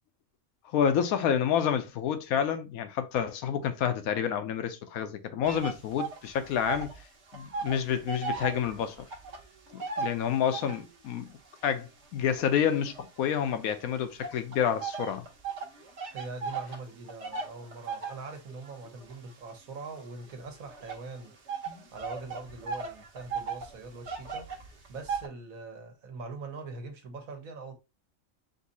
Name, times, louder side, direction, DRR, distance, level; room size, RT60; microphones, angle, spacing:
voice 1, 0.7-6.9 7.3-9.0 9.7-11.3 11.6-15.2 21.7-21.8, left 8 dB, 85° left, 1.1 m, -29 dB
sound 1, 5.4-7.0 7.3-10.9 11.5-13.6 14.2-25.3, right 5 dB, 55° right, 1.2 m, -38 dB
voice 2, 16.1-21.3 21.9-24.5 24.9-27.7, right 3 dB, 75° right, 1.4 m, -42 dB
4.1 x 2.6 x 4.1 m
omnidirectional pair, 1.5 m